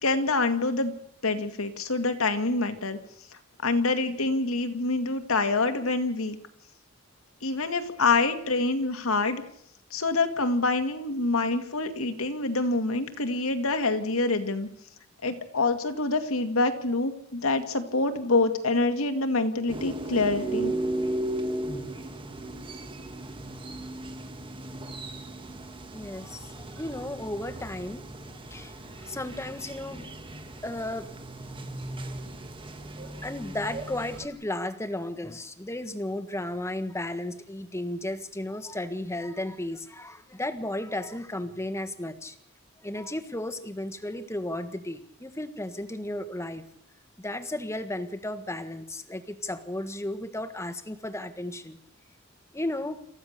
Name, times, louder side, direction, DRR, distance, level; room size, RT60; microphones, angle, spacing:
voice 1, 0.0-0.9 1.2-3.0 3.6-6.4 7.4-9.4 9.9-14.7 15.2-20.7, left 3 dB, 85° left, 7 dB, 2.2 m, -26 dB
sound 1, 19.7-34.3, right 1 dB, 25° right, 1.8 m, -36 dB
voice 2, 25.9-28.0 28.3-30.1 30.6-31.1 31.4-31.5 33.2-42.3 42.8-46.6 47.2-51.8 52.5-53.0, left 1 dB, 15° left, 10 dB, 1.5 m, -34 dB
27.5 x 15.0 x 6.7 m, 0.73 s
head